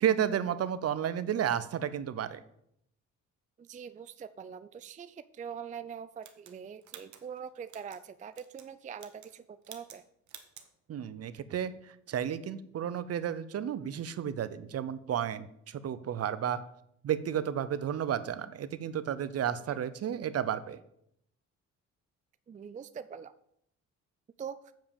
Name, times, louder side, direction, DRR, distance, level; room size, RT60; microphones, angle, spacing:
voice 1, 0.0-2.4 10.9-16.6 17.0-20.8, right 9 dB, 55° right, 14 dB, 0.7 m, -32 dB
voice 2, 3.6-10.0 19.5-19.8 22.5-23.3 24.4-24.7, right 7 dB, 25° right, 13 dB, 0.4 m, -43 dB
sound 1, 6.2-8.0 8.3-8.7 9.0-9.4 9.6-10.0 10.3-10.7, right 9 dB, 70° right, 1.2 m, -51 dB
7.4 x 5.1 x 7.2 m, 0.74 s
cardioid pair, 90°, 30 cm